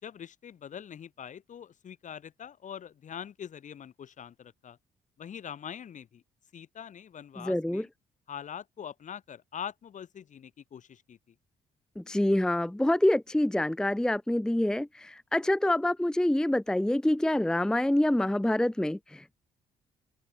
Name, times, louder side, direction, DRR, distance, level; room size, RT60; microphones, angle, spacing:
voice 1, 0.0-4.8 5.2-6.2 6.5-7.9 8.3-11.4, left 8 dB, 55° left, 2.2 m, -43 dB
voice 2, 7.4-7.8 12.0-19.3, left 1 dB, 5° left, 0.6 m, -26 dB
open air
supercardioid pair, 55°, 15 cm